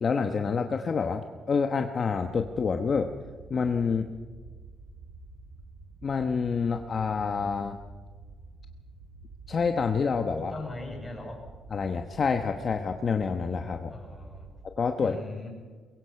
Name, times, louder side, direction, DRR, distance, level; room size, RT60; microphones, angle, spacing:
voice 1, 0.0-3.1 3.5-4.1 6.0-7.8 9.5-10.5 11.7-13.9 14.8-15.2, left 5 dB, 35° left, 5 dB, 1.1 m, -27 dB
sound 1, 2.2-14.6, right 3 dB, 70° right, 7.3 m, -49 dB
voice 2, 10.4-11.4 13.9-14.5 15.0-15.5, left 2 dB, 5° left, -1 dB, 6.8 m, -39 dB
23.5 x 22.0 x 5.8 m, 1.5 s
cardioid pair, 155°, 0 cm